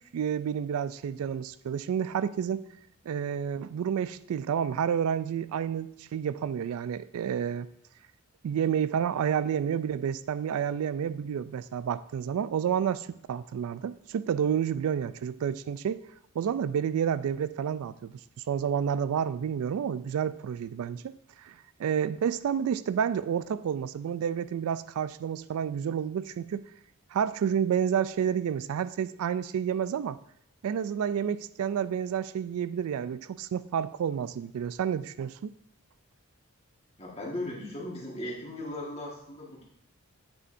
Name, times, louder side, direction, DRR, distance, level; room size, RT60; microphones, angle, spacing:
voice 1, 0.1-2.6 3.1-7.7 8.4-16.0 16.4-18.1 18.5-21.1 21.4-26.6 27.1-30.2 30.6-35.5, right 8 dB, 80° right, 16 dB, 0.3 m, -30 dB
voice 2, 37.0-39.6, left 1 dB, 25° left, -3 dB, 1.5 m, -37 dB
8.4 x 6.3 x 2.6 m, 0.72 s
head